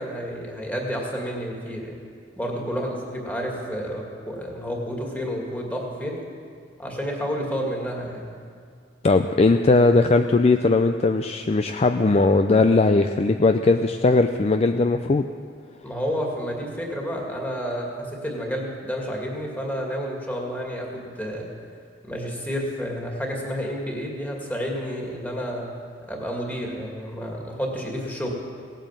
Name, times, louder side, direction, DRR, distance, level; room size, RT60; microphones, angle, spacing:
voice 1, 0.0-2.0 2.4-6.2 6.8-8.4 15.8-21.5 22.0-25.7 26.1-28.3, equal, 10° left, -1 dB, 2.3 m, -30 dB
voice 2, 9.0-15.3, left 3 dB, 35° left, 7 dB, 0.4 m, -19 dB
17.5 x 9.0 x 7.5 m, 2.1 s
head